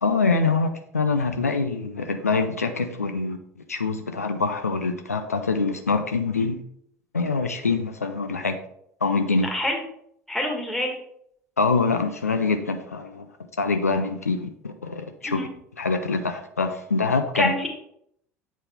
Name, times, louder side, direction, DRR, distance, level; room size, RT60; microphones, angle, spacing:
voice 1, 0.0-3.4 3.7-6.6 7.1-8.6 9.0-9.5 11.6-13.3 13.6-15.4 15.8-17.5, left 4 dB, 85° left, 7 dB, 0.5 m, -24 dB
voice 2, 9.5-9.8 10.3-10.9 15.2-15.5 17.3-17.7, left 1 dB, 5° left, 1 dB, 1.7 m, -26 dB
8.0 x 4.4 x 3.5 m, 0.71 s
figure-of-eight pair, 70°, 8 cm